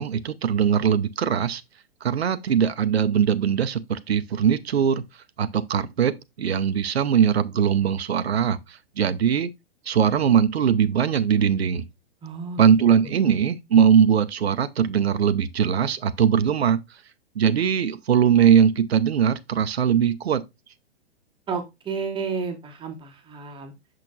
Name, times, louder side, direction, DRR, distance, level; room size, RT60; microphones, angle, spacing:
voice 1, 0.0-1.6 2.0-5.0 5.4-9.5 9.9-11.8 12.6-16.8 17.4-20.4, right 8 dB, 75° right, 0.6 m, -21 dB
voice 2, 12.2-12.6 13.2-13.3 21.5-23.7, right 5 dB, 15° right, 1.0 m, -31 dB
6.6 x 6.1 x 2.4 m
figure-of-eight pair, 110°, 32 cm